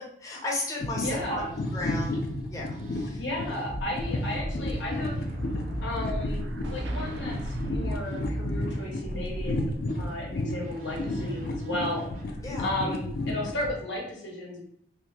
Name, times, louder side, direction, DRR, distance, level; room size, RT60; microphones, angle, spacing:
voice 1, 0.2-1.4 1.7-2.2 2.5-3.2 12.4-12.7, left 2 dB, 20° left, -4 dB, 0.7 m, -34 dB
sound 1, 0.8-13.7, left 1 dB, 55° left, 0.4 m, -33 dB
voice 2, 1.0-1.5 3.1-5.3 5.8-9.7 10.0-12.0 12.3-14.6, left 1 dB, 90° left, -1 dB, 1.0 m, -34 dB
Musical instrument, 1.0-12.8, equal, 50° right, 0.6 m, -38 dB
Explosion, 4.3-8.9, right 1 dB, 85° right, 0.4 m, -42 dB
2.9 x 2.6 x 3.4 m, 0.67 s
head